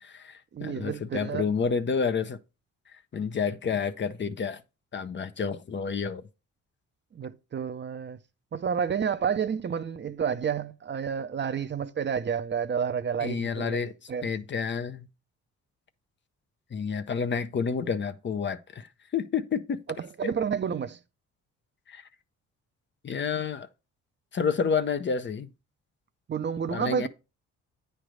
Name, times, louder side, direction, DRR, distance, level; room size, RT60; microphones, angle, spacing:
voice 1, 0.0-2.4 2.9-4.6 4.9-6.2 13.2-13.9 14.2-15.1 16.7-19.8 20.2-20.3 21.9-22.0 23.0-23.7 24.3-25.5 26.7-27.1, left 6 dB, 40° left, 0.7 m, -29 dB
voice 2, 0.5-1.4 7.1-8.2 8.5-14.3 20.0-21.0 26.3-27.1, right 7 dB, 40° right, 0.6 m, -30 dB
9.0 x 3.3 x 6.2 m
cardioid pair, 90°, 30 cm